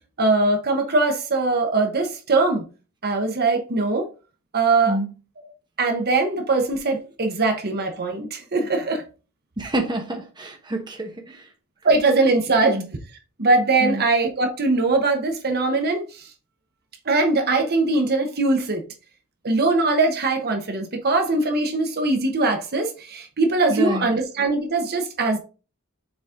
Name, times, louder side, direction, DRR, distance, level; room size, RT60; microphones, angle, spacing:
voice 1, 0.2-2.6 3.0-4.1 4.5-5.0 5.8-9.0 11.8-12.8 13.4-16.3 17.1-18.8 19.4-25.4, right 3 dB, 45° right, 1.1 m, -21 dB
voice 2, 9.6-11.5 12.6-12.9 13.8-14.0 23.7-24.1, right 1 dB, 20° right, 1.1 m, -27 dB
7.1 x 4.1 x 3.7 m
head